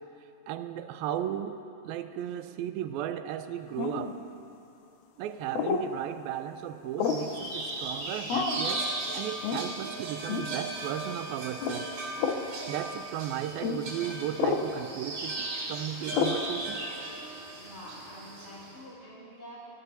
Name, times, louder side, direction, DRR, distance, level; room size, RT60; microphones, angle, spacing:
voice 1, 0.5-4.2 5.2-11.9 12.7-16.8, right 10 dB, 90° right, 10 dB, 2.4 m, -35 dB
sound 1, 3.8-4.1 5.5-5.9 7.0-7.3 8.3-8.7 9.4-9.6 10.3-10.5 11.6-11.8 12.2-12.4 13.6-13.8 14.4-14.7 16.1-16.4, left 6 dB, 70° left, 2.1 m, -29 dB
sound 2, 7.0-18.7, right 2 dB, 65° right, 4.4 m, -37 dB
voice 2, 17.5-19.6, equal, 5° right, -11 dB, 3.5 m, -47 dB
29.0 x 16.0 x 2.8 m, 2.7 s
omnidirectional pair, 4.2 m